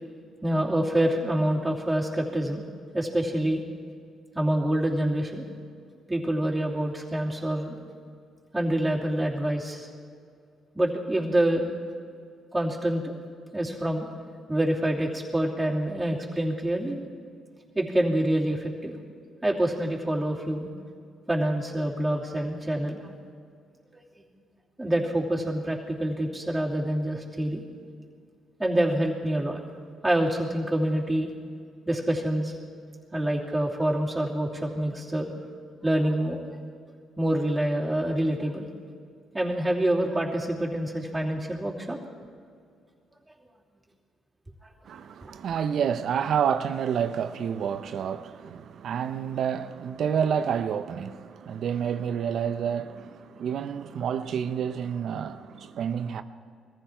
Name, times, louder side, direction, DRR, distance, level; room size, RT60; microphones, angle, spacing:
voice 1, 0.4-2.6 2.9-3.6 4.3-5.5 6.1-7.8 8.5-9.9 10.7-11.7 12.5-13.0 13.5-14.1 14.5-17.0 17.7-18.9 19.4-20.7 21.3-23.1 24.8-27.6 28.6-29.6 30.0-31.3 31.9-32.5 33.1-35.3 35.8-36.4 37.2-38.7 39.3-42.0, right 1 dB, 10° right, 2.9 m, -26 dB
voice 2, 44.8-56.2, right 8 dB, 65° right, 0.8 m, -29 dB
21.0 x 15.0 x 4.6 m
cardioid pair, 90°, 0 cm